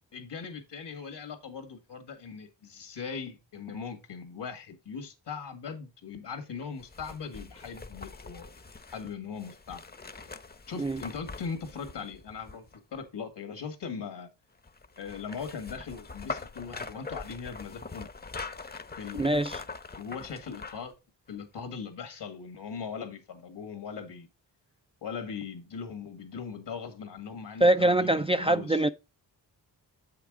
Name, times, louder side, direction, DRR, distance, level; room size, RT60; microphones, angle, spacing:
voice 1, 0.1-8.5 8.9-9.8 10.7-12.7 12.9-14.3 15.0-18.1 19.0-19.3 20.0-20.9 21.3-24.3 25.0-28.9, left 6 dB, 75° left, 1.8 m, -40 dB
sound 1, 6.8-13.0 14.6-20.9 21.3-21.4, left 4 dB, 25° left, 0.7 m, -43 dB
voice 2, 19.2-19.6 27.6-28.9, right 1 dB, 15° right, 0.3 m, -24 dB
7.6 x 5.8 x 3.6 m
cardioid pair, 60°, 41 cm